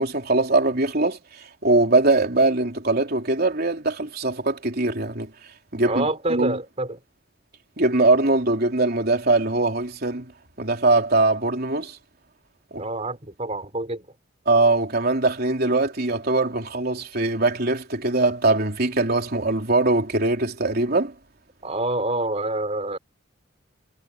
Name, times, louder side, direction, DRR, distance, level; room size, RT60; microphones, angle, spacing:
voice 1, 0.0-5.3 5.7-6.6 7.8-10.3 10.6-12.0 12.7-12.8 14.5-21.1, right 2 dB, 55° right, 3.5 m, -22 dB
voice 2, 5.8-7.0 12.8-14.1 21.6-23.0, right 2 dB, 35° right, 4.3 m, -27 dB
head